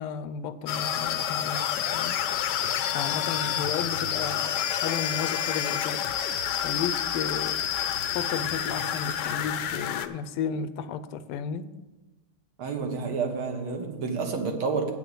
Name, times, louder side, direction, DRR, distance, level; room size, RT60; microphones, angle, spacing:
voice 1, 0.0-2.2 2.9-6.0 6.6-7.6 8.1-11.7, left 7 dB, 85° left, 1.5 m, -33 dB
sound 1, 0.7-10.1, left 9 dB, 70° left, 1.0 m, -29 dB
voice 2, 12.6-14.9, right 4 dB, 75° right, 2.2 m, -29 dB
8.6 x 5.7 x 7.9 m
omnidirectional pair, 2.4 m